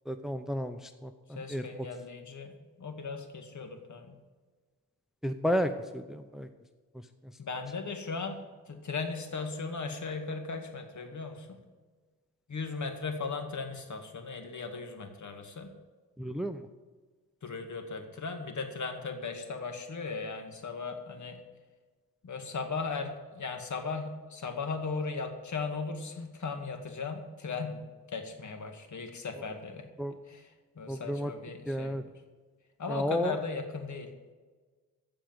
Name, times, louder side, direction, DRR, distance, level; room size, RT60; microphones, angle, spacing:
voice 1, 0.1-1.6 5.2-6.5 16.2-16.6 30.0-30.1 30.9-31.3 31.7-32.0 32.9-33.4, equal, ahead, 8 dB, 0.8 m, -32 dB
voice 2, 1.4-4.2 7.4-11.5 12.5-15.7 17.4-21.4 22.2-29.9 30.3-30.5 30.8-32.1 32.8-34.1, left 4 dB, 55° left, 5 dB, 2.2 m, -37 dB
15.0 x 5.1 x 9.2 m, 1.4 s
cardioid pair, 75°, 35 cm